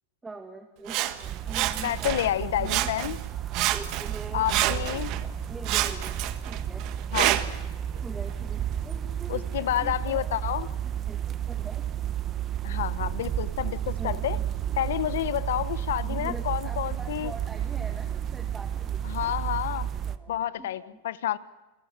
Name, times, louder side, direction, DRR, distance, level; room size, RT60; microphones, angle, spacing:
voice 1, 0.2-2.9 3.7-6.2 6.5-6.9 8.0-11.9 13.9-14.4 16.0-19.3 20.1-21.0, right 3 dB, 10° right, 3 dB, 2.0 m, -44 dB
Sawing, 0.9-2.3 2.6-3.3 3.5-5.2 5.6-7.6 8.3-8.4, right 15 dB, 45° right, 1.4 m, -28 dB
sound 1, 1.2-20.2, right 10 dB, 30° right, 0.9 m, -32 dB
voice 2, 1.8-3.2 4.3-5.1 7.1-7.3 9.3-10.7 12.6-14.4 14.8-17.3 19.0-19.9 20.3-21.4, left 12 dB, 80° left, 16 dB, 1.0 m, -29 dB
29.0 x 19.0 x 7.5 m, 1.1 s
supercardioid pair, 140°, 0 cm